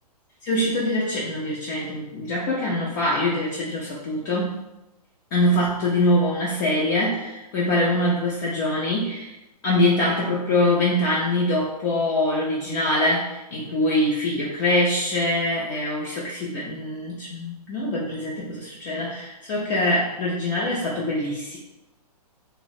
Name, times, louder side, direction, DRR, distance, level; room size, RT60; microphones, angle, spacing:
voice 1, 0.4-4.6 5.3-9.3 9.6-21.6, left 1 dB, 30° left, -5 dB, 0.4 m, -24 dB
2.4 x 2.0 x 2.5 m, 0.96 s
hypercardioid pair, 130°, 21 cm